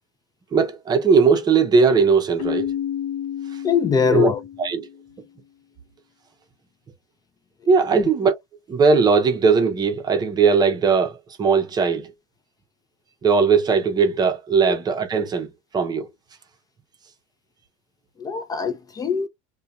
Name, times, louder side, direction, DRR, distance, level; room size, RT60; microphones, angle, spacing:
voice 1, 0.5-2.7 4.1-4.3 4.6-4.9 7.7-8.3 8.7-12.1 13.2-15.5 15.7-16.1, right 5 dB, 25° right, 0.7 m, -19 dB
Keyboard (musical), 2.4-5.0, left 10 dB, 55° left, 0.9 m, -30 dB
voice 2, 3.6-4.4 7.9-8.1 14.7-14.8 18.2-19.3, left 6 dB, 25° left, 0.4 m, -22 dB
2.7 x 2.2 x 2.4 m
supercardioid pair, 115°, 16 cm